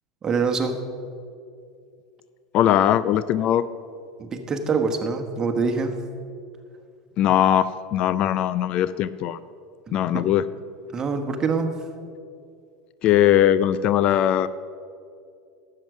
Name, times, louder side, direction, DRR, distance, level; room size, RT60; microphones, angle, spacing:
voice 1, 0.2-0.7 4.2-5.9 9.9-10.2 10.9-11.7, right 4 dB, 30° right, 5 dB, 1.3 m, -25 dB
voice 2, 2.5-3.6 7.2-9.4 9.9-10.4 13.0-14.5, left 11 dB, 50° left, 16 dB, 0.4 m, -20 dB
12.0 x 7.8 x 6.1 m, 2.4 s
hypercardioid pair, 90°, 2 cm